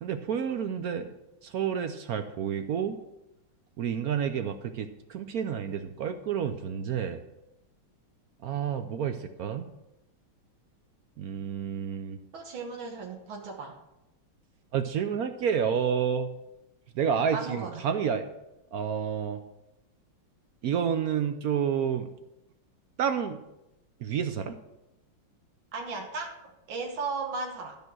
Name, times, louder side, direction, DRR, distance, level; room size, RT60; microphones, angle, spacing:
voice 1, 0.0-1.1 1.4-3.0 3.8-7.2 8.4-9.6 11.2-12.2 14.7-16.3 17.0-18.3 18.7-19.4 20.6-22.1 23.0-23.4 24.0-24.5, right 7 dB, 70° right, 8 dB, 0.9 m, -29 dB
voice 2, 12.3-13.7 17.3-17.8 25.7-27.8, right 4 dB, 85° right, 1 dB, 2.0 m, -36 dB
12.5 x 5.4 x 6.1 m, 0.90 s
omnidirectional pair, 2.1 m